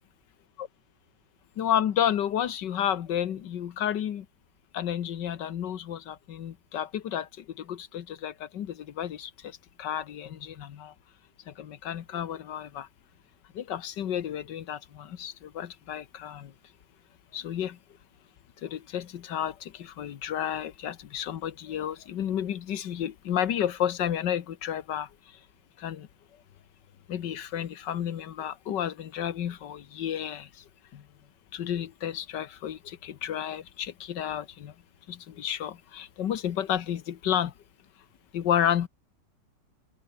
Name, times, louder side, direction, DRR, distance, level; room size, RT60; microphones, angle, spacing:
voice 1, 1.6-4.3 4.7-10.9 11.5-12.9 13.5-16.5 17.3-17.8 18.6-25.4 25.8-26.1 27.1-30.6 30.9-31.0 31.5-34.7 35.1-37.5 38.3-38.9, left 10 dB, 75° left, 1.8 m, -31 dB
omnidirectional pair, 1.9 m